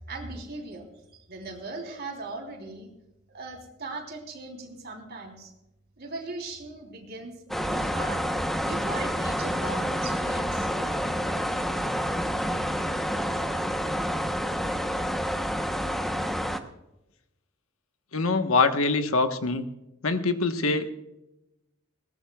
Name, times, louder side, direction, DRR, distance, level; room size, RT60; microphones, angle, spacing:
voice 1, 0.1-2.9 3.3-5.5 6.0-8.2 8.6-10.7, right 3 dB, 50° right, 1 dB, 3.5 m, -39 dB
sound 1, 7.5-16.6, equal, ahead, 0.9 m, -28 dB
voice 2, 18.1-19.6 20.0-20.9, left 3 dB, 90° left, 8 dB, 1.2 m, -24 dB
20.0 x 18.0 x 2.3 m, 0.92 s
head